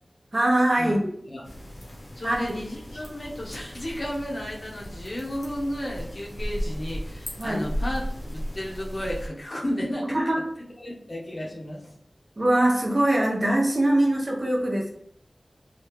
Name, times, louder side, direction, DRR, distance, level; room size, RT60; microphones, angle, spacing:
voice 1, 0.3-1.1 2.2-2.5 7.4-7.6 10.1-10.4 12.4-14.9, right 1 dB, 45° right, 0 dB, 0.7 m, -22 dB
sound 1, 1.4-9.3, equal, 75° left, 1.1 m, -35 dB
voice 2, 2.1-10.2 10.8-11.9, equal, 55° left, -2 dB, 0.9 m, -33 dB
3.3 x 2.3 x 3.2 m, 0.70 s
wide cardioid pair, 60°, 0 cm